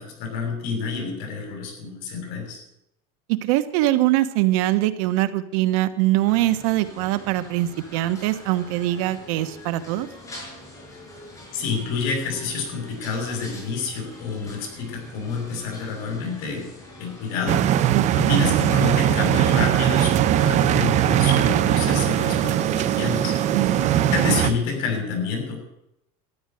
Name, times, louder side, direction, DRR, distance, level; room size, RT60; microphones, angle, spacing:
voice 1, 0.0-2.6 11.5-16.7 17.0-17.6 18.1-23.3 24.1-25.6, left 5 dB, 65° left, 2 dB, 6.4 m, -28 dB
voice 2, 3.3-10.1 17.9-18.3 23.5-24.1, right 15 dB, 80° right, 11 dB, 1.3 m, -23 dB
sound 1, 6.3-24.5, left 1 dB, 20° left, 5.8 m, -44 dB
sound 2, 17.5-24.5, right 11 dB, 40° right, 0.9 m, -20 dB
13.5 x 9.7 x 9.2 m, 0.83 s
cardioid pair, 145°, 17 cm